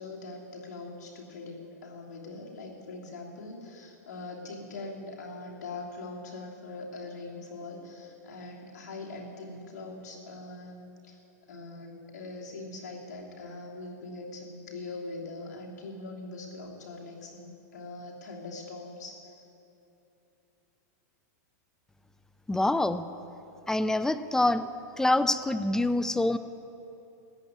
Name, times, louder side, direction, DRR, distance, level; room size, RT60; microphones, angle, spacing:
voice 1, 0.0-11.2 11.5-19.3, left 3 dB, 75° left, -1 dB, 3.0 m, -42 dB
voice 2, 22.5-23.0 23.7-24.7 25.0-26.4, left 2 dB, 5° left, 13 dB, 0.4 m, -25 dB
14.0 x 9.1 x 9.3 m, 2.9 s
hypercardioid pair, 130°, 9 cm